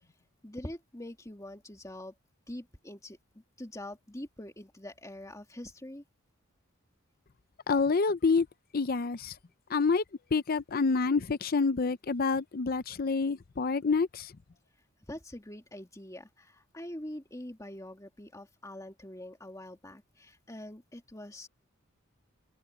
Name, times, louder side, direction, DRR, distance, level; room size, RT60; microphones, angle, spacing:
voice 1, 0.4-2.1 2.5-3.2 3.6-6.0 14.7-21.5, left 1 dB, 15° left, 2.7 m, -44 dB
voice 2, 7.7-8.5 8.7-9.3 9.7-10.0 10.3-14.3, left 4 dB, 45° left, 0.6 m, -27 dB
head